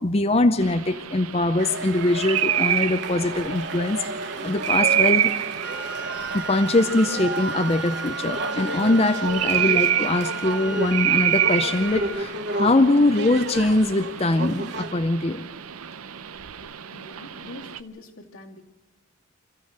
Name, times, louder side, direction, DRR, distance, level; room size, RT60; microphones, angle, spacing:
voice 1, 0.0-5.3 6.3-15.5, left 2 dB, 30° left, 9 dB, 0.6 m, -22 dB
sound 1, 0.6-17.8, right 11 dB, 90° right, 0.8 m, -28 dB
sound 2, 1.6-14.9, right 2 dB, 50° right, 1.2 m, -32 dB
Wind instrument woodwind instrument, 5.6-12.3, right 4 dB, 5° right, 1.1 m, -35 dB
voice 2, 16.9-18.6, left 2 dB, 85° left, 0 dB, 2.6 m, -43 dB
26.5 x 15.0 x 6.6 m, 1.1 s
head